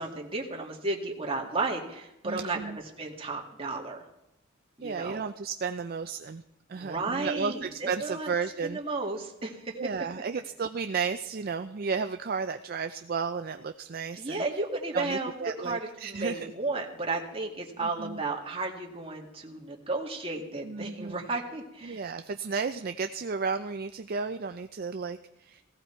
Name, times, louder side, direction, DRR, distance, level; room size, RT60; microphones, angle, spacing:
voice 1, 0.0-4.1 4.8-5.2 6.7-8.3 8.6-9.8 14.2-15.3 15.6-22.1, right 3 dB, 30° right, 0 dB, 2.1 m, -33 dB
voice 2, 2.2-2.8 4.8-6.4 6.7-8.8 9.8-14.4 14.9-16.5 17.8-18.2 20.6-21.1 21.8-25.6, right 5 dB, 50° right, 8 dB, 0.5 m, -33 dB
17.5 x 16.0 x 4.5 m, 0.87 s
head